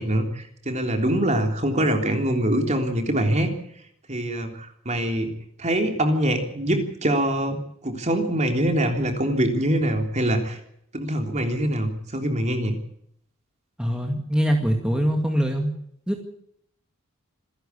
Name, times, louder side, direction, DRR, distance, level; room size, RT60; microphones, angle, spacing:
voice 1, 0.0-3.5 4.1-5.3 5.6-7.6 7.8-10.6 10.9-12.8, right 1 dB, 30° right, 4 dB, 3.5 m, -24 dB
voice 2, 13.8-15.7 16.1-16.2, equal, 5° right, 2 dB, 2.2 m, -23 dB
27.0 x 11.0 x 8.5 m, 0.70 s
head